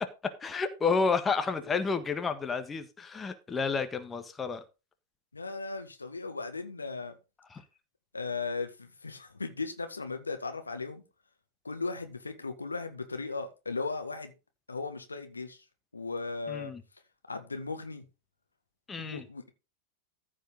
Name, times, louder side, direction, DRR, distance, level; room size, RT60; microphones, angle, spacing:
voice 1, 0.4-4.6 7.5-7.6 16.5-16.8 18.9-19.3, left 5 dB, 15° left, 1.5 m, -30 dB
voice 2, 5.3-7.1 8.1-11.0 11.6-14.3 14.7-15.6 15.9-16.7 17.3-18.0 19.0-19.5, left 4 dB, 80° left, 1.8 m, -37 dB
14.5 x 5.2 x 5.2 m
figure-of-eight pair, 90°, 0 cm